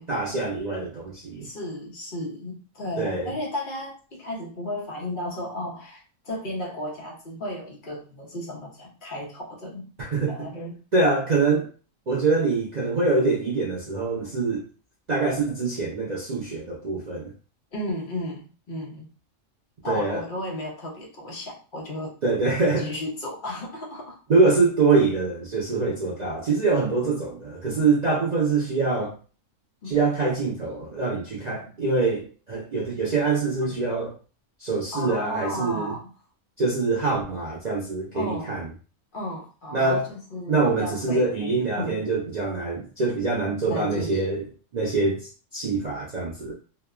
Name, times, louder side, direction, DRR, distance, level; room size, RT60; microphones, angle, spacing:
voice 1, 0.1-1.5 3.0-3.3 10.0-10.5 10.9-11.7 12.1-14.6 15.1-17.3 19.8-20.2 22.2-22.9 24.3-29.2 29.9-34.2 34.6-36.0 36.6-38.7 39.7-40.1 40.5-44.4 44.7-46.5, right 3 dB, 60° right, -4 dB, 0.4 m, -24 dB
voice 2, 1.4-9.9 10.3-10.8 17.7-19.1 19.8-22.2 22.8-24.2 29.8-30.0 34.9-36.1 38.1-38.5 39.1-42.0 43.7-44.2, left 1 dB, 50° left, -2 dB, 0.7 m, -34 dB
2.8 x 2.0 x 2.3 m, 0.37 s
omnidirectional pair, 1.3 m